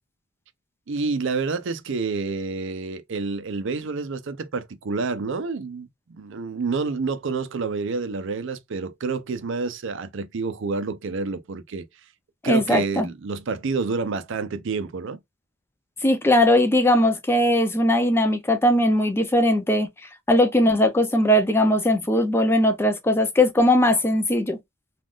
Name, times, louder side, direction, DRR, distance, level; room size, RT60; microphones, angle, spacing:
voice 1, 0.9-5.9 6.2-11.9 12.4-15.2, right 4 dB, 65° right, 0.5 m, -28 dB
voice 2, 12.5-13.1 16.0-19.9 20.3-24.6, left 1 dB, 10° left, 0.5 m, -19 dB
3.5 x 2.4 x 2.4 m
head